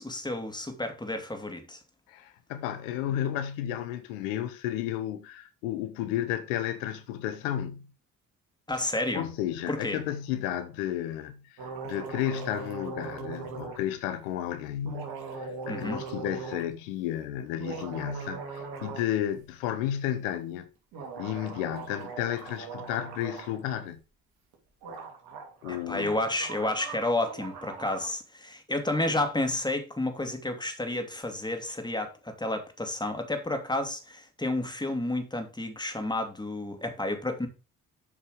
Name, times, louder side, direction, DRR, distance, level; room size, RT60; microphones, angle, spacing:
voice 1, 0.0-1.8 8.7-9.3 9.7-10.0 15.7-16.0 25.7-37.5, left 2 dB, 10° left, 2.6 m, -31 dB
voice 2, 2.1-7.9 9.1-20.7 21.2-24.0 25.6-26.2, left 11 dB, 85° left, 0.9 m, -32 dB
sound 1, 11.6-13.8 14.8-16.7 17.5-19.1 19.4-19.5 20.9-23.6 24.5-24.6 24.8-28.1, right 4 dB, 75° right, 2.8 m, -40 dB
8.2 x 5.4 x 5.0 m
hypercardioid pair, 50°, 38 cm